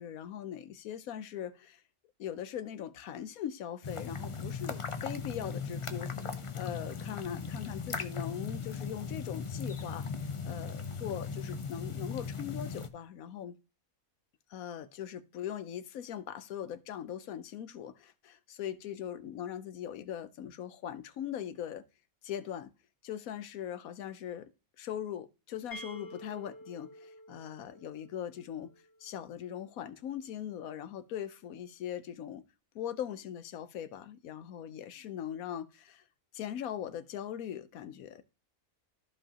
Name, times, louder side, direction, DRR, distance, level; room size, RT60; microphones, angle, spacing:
voice 1, 0.0-1.8 2.2-10.1 10.4-13.5 14.5-21.8 22.2-22.7 23.0-24.5 24.8-28.7 29.0-32.4 32.7-36.0 36.3-38.2, left 10 dB, 75° left, 1.1 m, -40 dB
sound 1, 3.8-12.9, left 5 dB, 40° left, 0.4 m, -38 dB
sound 2, 25.7-29.4, equal, 15° left, 1.6 m, -50 dB
14.0 x 5.0 x 2.9 m
omnidirectional pair, 1.5 m